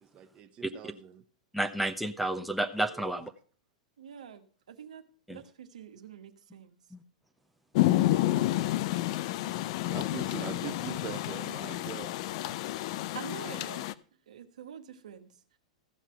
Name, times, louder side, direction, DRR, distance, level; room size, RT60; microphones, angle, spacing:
voice 1, 0.0-1.2 2.7-3.1 9.5-12.2, right 9 dB, 35° right, 0.8 m, -43 dB
voice 2, 1.5-3.3 5.3-5.4 6.9-7.0, right 1 dB, ahead, 0.9 m, -31 dB
voice 3, 4.0-6.8 13.1-13.9 14.3-15.3, right 8 dB, 75° right, 1.3 m, -46 dB
Rain, 7.8-13.9, left 15 dB, 55° left, 0.5 m, -30 dB
15.0 x 6.0 x 5.6 m
hypercardioid pair, 105°, 4 cm